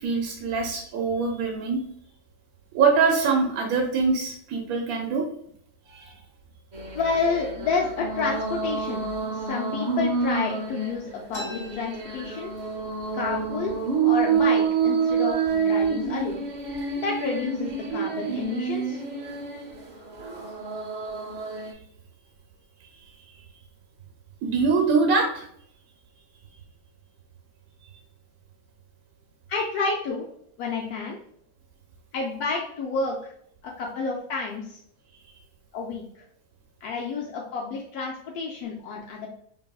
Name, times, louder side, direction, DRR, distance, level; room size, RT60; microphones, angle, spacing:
voice 1, 0.0-1.8 2.7-5.3 5.9-6.1 24.4-25.5, right 4 dB, 75° right, 1 dB, 1.1 m, -23 dB
sound 1, 6.7-21.7, right 6 dB, 50° right, 0.5 m, -28 dB
voice 2, 6.9-12.5 13.1-13.7 14.0-16.4 17.0-19.0 29.5-30.2 30.6-31.2 32.1-33.3 33.6-34.8 35.7-36.1 36.8-39.3, left 4 dB, 90° left, -2 dB, 1.1 m, -30 dB
sound 2, 11.3-12.9 13.3-13.4 13.6-14.2 14.8-15.0 15.7-15.9 16.3-16.8, equal, 30° left, 1.4 m, -42 dB
5.3 x 2.6 x 2.3 m, 0.66 s
omnidirectional pair, 1.6 m